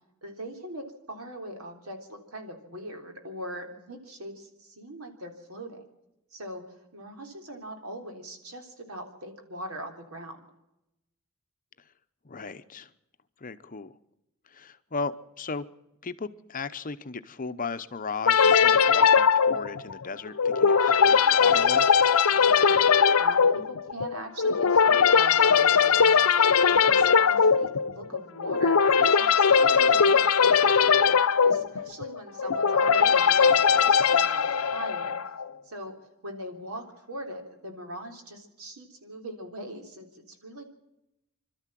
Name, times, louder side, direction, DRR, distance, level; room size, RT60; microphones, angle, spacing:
voice 1, 0.2-5.8 6.3-6.6 6.9-10.5 22.3-22.8 23.2-31.1 31.4-35.2 35.6-36.0 36.2-40.6, right 1 dB, 85° right, 3 dB, 3.6 m, -41 dB
voice 2, 12.2-12.9 13.4-13.9 14.5-15.6 16.0-21.9, left 4 dB, 40° left, 12 dB, 0.8 m, -36 dB
sound 1, 18.3-35.4, left 6 dB, 80° left, 0.7 m, -20 dB
26.5 x 13.0 x 7.6 m, 0.90 s
head